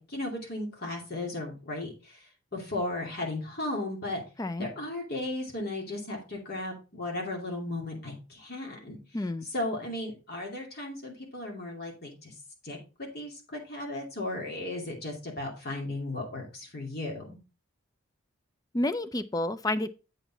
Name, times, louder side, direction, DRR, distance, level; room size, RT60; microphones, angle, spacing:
voice 1, 0.0-2.3 2.5-4.2 4.6-9.0 9.5-12.3 12.6-12.8 13.1-17.4, left 2 dB, 45° left, 2.5 m, -35 dB
voice 2, 4.4-4.7 9.1-9.5 18.7-19.9, left 1 dB, 15° left, 0.4 m, -30 dB
8.1 x 5.5 x 3.9 m
head